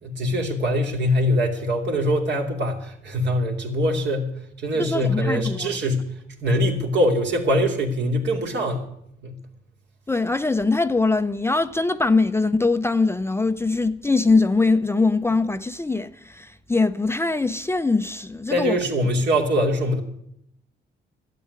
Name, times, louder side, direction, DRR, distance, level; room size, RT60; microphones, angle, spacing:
voice 1, 0.0-8.9 9.2-9.4 18.5-20.0, equal, 60° right, 2.6 m, -23 dB
voice 2, 4.8-5.7 10.1-18.8, left 3 dB, 10° left, 0.5 m, -22 dB
12.5 x 8.4 x 9.6 m
cardioid pair, 90°, 20 cm